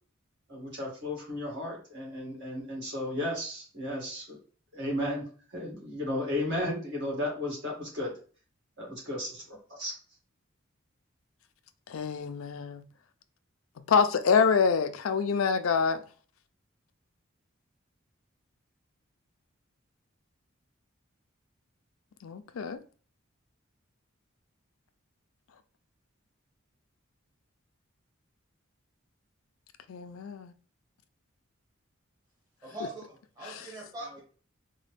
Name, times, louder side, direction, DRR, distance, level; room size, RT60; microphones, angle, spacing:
voice 1, 0.5-4.4 4.7-5.3 5.5-8.1 8.8-9.9, left 1 dB, 55° right, 1.9 m, -34 dB
voice 2, 11.9-12.8 13.9-16.0 22.2-22.8 29.9-30.5 33.4-33.6, left 6 dB, 80° left, 0.4 m, -26 dB
voice 3, 32.6-34.2, right 1 dB, 20° right, 1.2 m, -42 dB
4.1 x 2.2 x 3.2 m
head